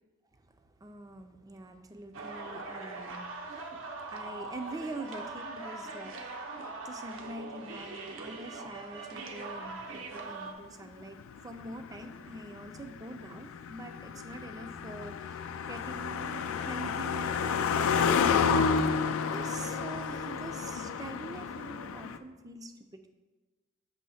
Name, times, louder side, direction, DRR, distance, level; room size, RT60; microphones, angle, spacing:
voice 1, 0.3-6.6 6.8-18.7 19.3-23.1, right 2 dB, 20° right, 7 dB, 0.4 m, -45 dB
sound 1, 2.1-10.5, right 3 dB, 70° right, 0.7 m, -41 dB
Car passing by, 11.0-22.2, left 6 dB, 85° left, 0.4 m, -31 dB
7.5 x 3.1 x 5.5 m, 1.2 s
head